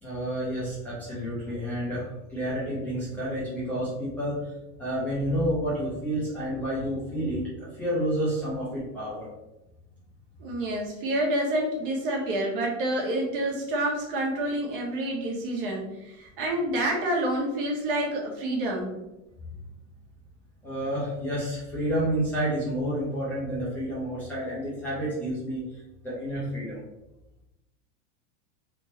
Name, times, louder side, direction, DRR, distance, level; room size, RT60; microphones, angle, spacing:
voice 1, 0.0-4.4 4.8-9.3 20.6-25.6 26.0-26.8, equal, 5° left, -10 dB, 0.7 m, -30 dB
voice 2, 10.4-18.9, right 1 dB, 45° right, -1 dB, 1.3 m, -28 dB
3.5 x 3.0 x 4.2 m, 0.93 s
supercardioid pair, 180°, 37 cm